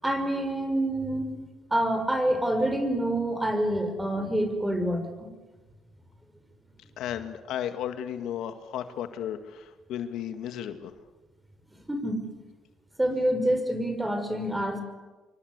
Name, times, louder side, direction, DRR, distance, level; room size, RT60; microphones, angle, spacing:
voice 1, 0.0-1.4 1.7-5.3 11.9-12.2 13.0-14.8, right 1 dB, 10° right, 8 dB, 5.8 m, -27 dB
voice 2, 7.0-10.9, left 10 dB, 75° left, 8 dB, 2.0 m, -34 dB
27.0 x 24.5 x 8.2 m, 1.2 s
cardioid pair, 95°, 0 cm